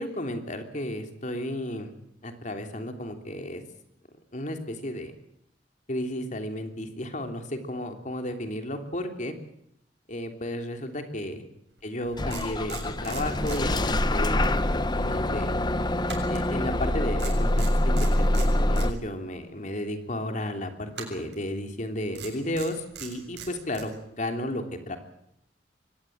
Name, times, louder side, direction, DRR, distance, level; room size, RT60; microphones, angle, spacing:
voice 1, 0.0-1.9 2.2-3.6 4.3-5.1 5.9-9.3 10.1-11.4 11.8-14.4 14.7-15.5 16.3-25.0, left 1 dB, 45° left, 6 dB, 3.1 m, -33 dB
sound 1, 11.8-11.9 12.3-14.3 14.6-14.8 16.1-16.9 17.2-18.9 20.9-21.4 22.1-23.9, right 7 dB, 75° right, 7.1 m, -41 dB
Bus / Engine starting, 12.2-18.9, left 1 dB, 25° left, 1.1 m, -25 dB
24.0 x 18.0 x 8.8 m, 0.77 s
head